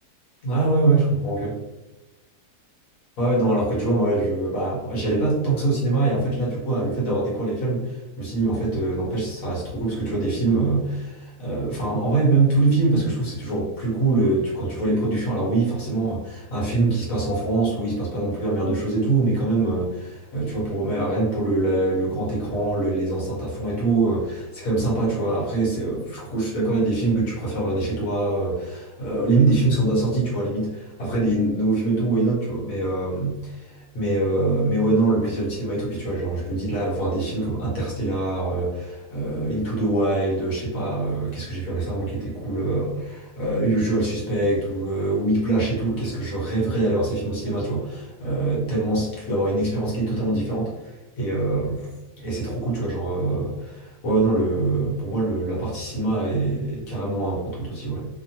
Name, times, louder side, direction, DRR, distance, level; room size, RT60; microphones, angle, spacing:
voice 1, 0.4-1.6 3.2-51.9 52.2-58.1, right 2 dB, 60° left, -5 dB, 1.4 m, -24 dB
2.9 x 2.5 x 2.8 m, 1.1 s
omnidirectional pair, 1.7 m